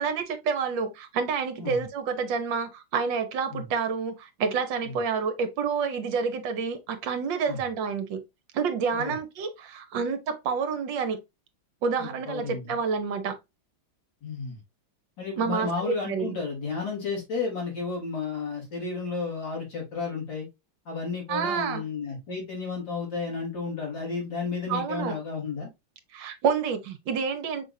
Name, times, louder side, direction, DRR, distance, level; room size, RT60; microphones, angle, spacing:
voice 1, 0.0-8.2 8.5-11.2 11.8-13.4 15.4-16.4 21.3-21.8 24.7-25.2 26.1-27.6, right 5 dB, 65° right, 1.5 m, -28 dB
voice 2, 12.0-12.8 14.2-14.6 15.2-20.5 20.9-25.7, left 4 dB, 55° left, 3.6 m, -32 dB
5.8 x 3.5 x 2.6 m
omnidirectional pair, 2.3 m